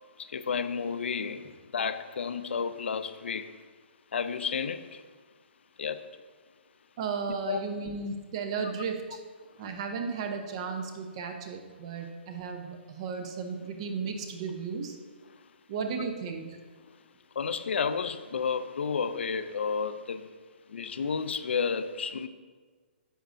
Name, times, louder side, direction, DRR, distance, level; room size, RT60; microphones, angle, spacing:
voice 1, 0.2-1.4 1.7-3.5 4.1-5.0 5.8-6.0 7.5-7.6 17.4-20.3 20.7-22.3, left 6 dB, 80° left, 11 dB, 0.5 m, -31 dB
voice 2, 7.0-9.2 9.6-15.0 15.7-16.6, right 5 dB, 30° right, 5 dB, 0.7 m, -34 dB
10.0 x 6.8 x 2.5 m, 1.5 s
hypercardioid pair, 170°, 6 cm